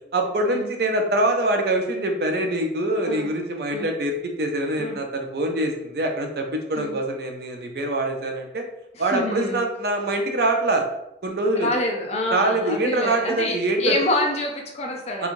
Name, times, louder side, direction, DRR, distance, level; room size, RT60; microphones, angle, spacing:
voice 1, 0.1-8.6 9.0-10.9 11.2-11.7 12.3-14.0 15.2-15.3, right 1 dB, 60° right, 3 dB, 0.5 m, -24 dB
voice 2, 8.9-9.6 11.5-15.3, left 1 dB, 35° left, 1 dB, 0.5 m, -27 dB
3.0 x 2.3 x 2.5 m, 0.84 s
head